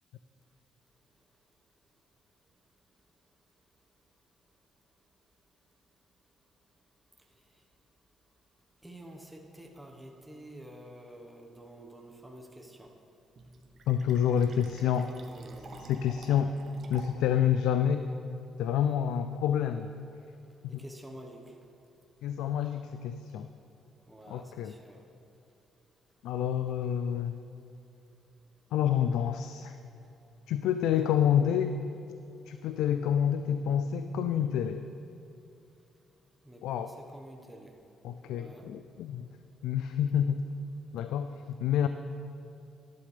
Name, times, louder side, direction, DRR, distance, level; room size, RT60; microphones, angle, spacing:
voice 1, 8.8-12.9 15.1-15.9 20.7-21.5 24.1-25.0 31.0-31.3 36.4-37.7 38.2-38.7, right 1 dB, 5° right, 0 dB, 1.3 m, -49 dB
Fill (with liquid), 13.4-17.4, right 3 dB, 55° right, 1.0 m, -50 dB
voice 2, 13.9-15.1 15.8-16.5 16.9-18.1 18.6-19.9 22.2-23.5 24.3-24.7 26.2-27.4 28.7-29.8 30.5-31.8 32.5-34.9 36.6-36.9 38.0-39.3 39.6-40.4 40.9-41.9, left 9 dB, 90° left, 9 dB, 0.3 m, -28 dB
11.5 x 11.0 x 3.4 m, 2.8 s
cardioid pair, 90°, 0 cm